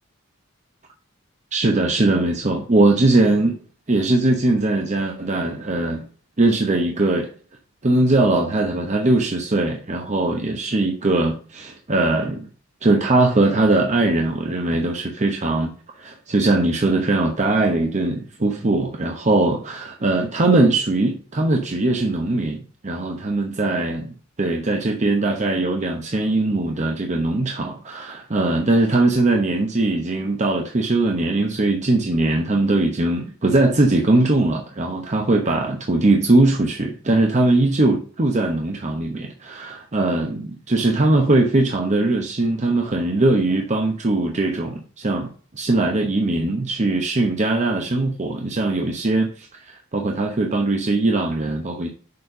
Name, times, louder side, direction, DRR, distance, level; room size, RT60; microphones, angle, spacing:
voice 1, 1.5-3.6 3.9-6.0 6.4-7.3 7.8-12.5 12.8-15.7 16.0-24.1 24.4-45.3 45.5-51.9, right 2 dB, 35° right, 3 dB, 0.9 m, -20 dB
6.8 x 4.2 x 6.7 m, 0.42 s
head